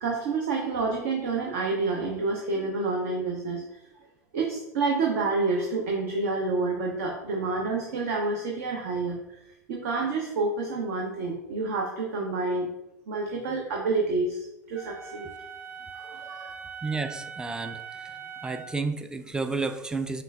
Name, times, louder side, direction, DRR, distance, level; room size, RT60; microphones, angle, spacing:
voice 1, 0.0-3.8 4.3-9.4 9.7-12.7 13.1-15.3 15.9-16.5, right 3 dB, 60° right, 0 dB, 0.6 m, -28 dB
Wind instrument woodwind instrument, 14.7-18.8, right 6 dB, 25° right, 0.8 m, -41 dB
voice 2, 16.8-18.1 18.4-20.2, right 3 dB, 10° right, 9 dB, 0.3 m, -31 dB
6.0 x 2.4 x 2.3 m, 0.91 s
figure-of-eight pair, 85°, 9 cm